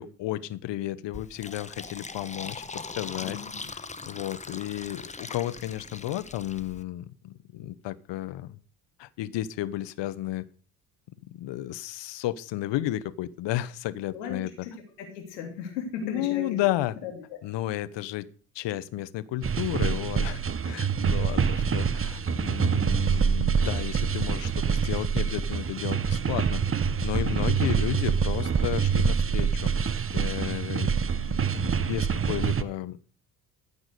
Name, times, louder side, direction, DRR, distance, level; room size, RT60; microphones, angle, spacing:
voice 1, 0.0-3.4 4.1-8.6 9.0-10.4 11.3-14.7 16.0-16.9 17.4-18.3 18.5-33.0, left 14 dB, 60° left, 17 dB, 1.0 m, -33 dB
Fill (with liquid), 1.1-6.8, left 4 dB, 15° left, 1.0 m, -40 dB
voice 2, 3.2-3.5 14.1-16.6 17.0-17.1 27.2-27.5, left 6 dB, 85° left, 3 dB, 3.0 m, -37 dB
sound 1, 19.4-32.6, right 6 dB, 25° right, 1.0 m, -26 dB
14.5 x 6.0 x 6.7 m, 0.43 s
hypercardioid pair, 55°, 48 cm